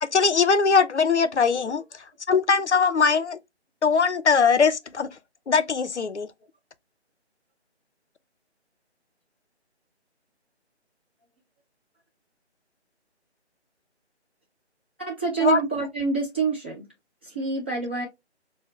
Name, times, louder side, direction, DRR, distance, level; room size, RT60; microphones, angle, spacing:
voice 1, 0.0-1.8 2.3-3.4 3.8-5.1 5.5-6.3 15.4-15.6, left 5 dB, 75° left, 0.6 m, -21 dB
voice 2, 15.0-16.9 17.2-18.1, right 5 dB, 10° right, 0.7 m, -27 dB
4.7 x 2.0 x 2.9 m
figure-of-eight pair, 155°, 34 cm